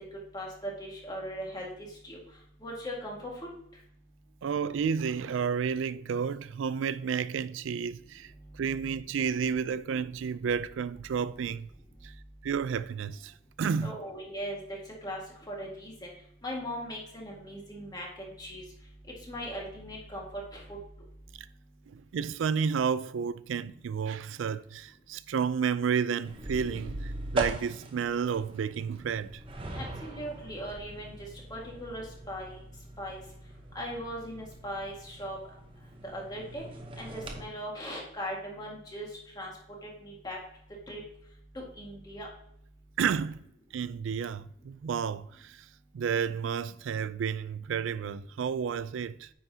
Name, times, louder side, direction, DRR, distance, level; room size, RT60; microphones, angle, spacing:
voice 1, 0.3-1.7 2.0-2.2 2.6-3.2 13.8-14.6 15.0-15.2 15.5-15.9 16.4-18.6 19.3-20.2 20.5-20.6 29.7-31.1 31.5-32.6 33.0-33.2 33.7-35.4 36.0-36.6 37.0-39.1 39.4-39.5 39.8-40.4 40.9-41.0 41.5-42.3, equal, 20° left, 1.7 m, -39 dB
voice 2, 4.4-8.3 8.6-11.7 12.0-12.1 12.4-13.9 21.9-29.4 43.0-43.4 43.7-45.6 45.9-49.3, right 6 dB, 80° right, 0.3 m, -31 dB
sound 1, 26.2-37.4, right 2 dB, 25° right, 0.8 m, -40 dB
9.2 x 5.6 x 2.7 m
head